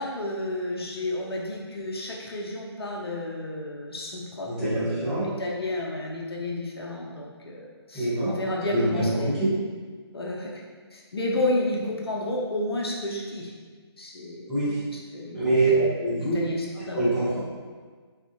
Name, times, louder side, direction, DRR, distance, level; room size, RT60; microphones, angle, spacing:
voice 1, 0.0-9.3 10.1-10.5 10.9-13.5 14.0-15.8 16.1-17.0, left 1 dB, 60° left, -2 dB, 0.5 m, -31 dB
voice 2, 4.5-5.3 7.9-8.3 8.6-9.5 14.5-14.8 15.3-16.3 16.9-17.4, right 2 dB, ahead, -18 dB, 0.8 m, -24 dB
2.7 x 2.5 x 2.4 m, 1.5 s
figure-of-eight pair, 145°, 14 cm